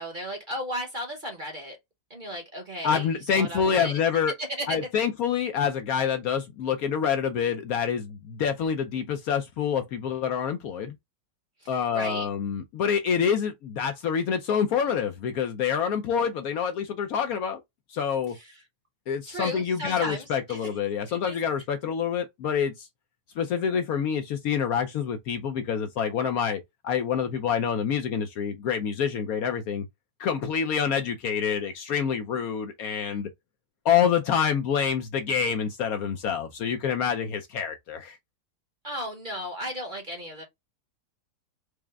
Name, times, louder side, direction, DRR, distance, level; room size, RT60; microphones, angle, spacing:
voice 1, 0.0-1.8 2.1-3.9 4.4-4.8 11.6-12.3 18.3-18.6 19.3-20.7 21.1-21.4 21.8-21.9 38.8-40.4, equal, 35° right, 0.9 m, -35 dB
voice 2, 2.8-4.3 4.7-11.0 11.7-17.6 17.9-18.4 19.1-22.9 23.4-29.9 30.2-33.3 33.8-38.2, left 7 dB, 70° left, 0.9 m, -27 dB
4.8 x 2.1 x 3.3 m
omnidirectional pair, 1.8 m